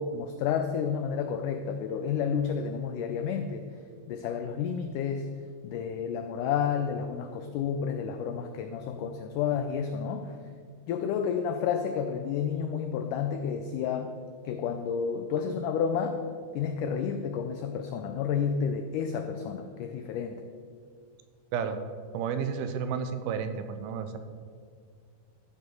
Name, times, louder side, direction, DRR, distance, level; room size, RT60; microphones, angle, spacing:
voice 1, 0.0-3.7 4.1-5.3 5.6-10.4 10.9-14.1 14.4-16.2 16.5-20.4, left 7 dB, 90° left, 7 dB, 1.8 m, -30 dB
voice 2, 22.1-24.2, right 7 dB, 90° right, 8 dB, 2.6 m, -31 dB
13.5 x 5.3 x 6.3 m, 2.1 s
omnidirectional pair, 4.3 m